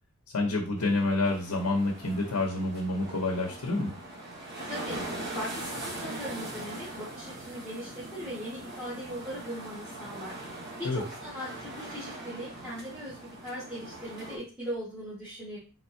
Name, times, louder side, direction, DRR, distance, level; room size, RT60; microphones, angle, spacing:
voice 1, 0.3-3.9 10.8-11.0, left 2 dB, 80° left, 1 dB, 0.9 m, -28 dB
sound 1, 0.8-14.4, right 1 dB, 50° right, 1.7 m, -41 dB
voice 2, 4.7-5.0 5.3-10.3 10.8-15.6, equal, 5° right, -11 dB, 1.8 m, -39 dB
4.3 x 4.0 x 2.7 m, 0.36 s
head